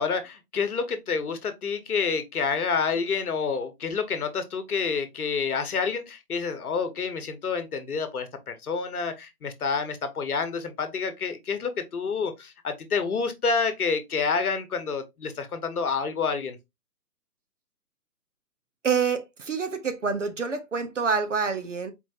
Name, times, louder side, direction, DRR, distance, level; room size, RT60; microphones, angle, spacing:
voice 1, 0.0-16.6, left 5 dB, 65° left, 1.0 m, -28 dB
voice 2, 18.8-21.9, right 5 dB, 50° right, 0.7 m, -27 dB
4.4 x 3.3 x 2.7 m
hypercardioid pair, 175°, 48 cm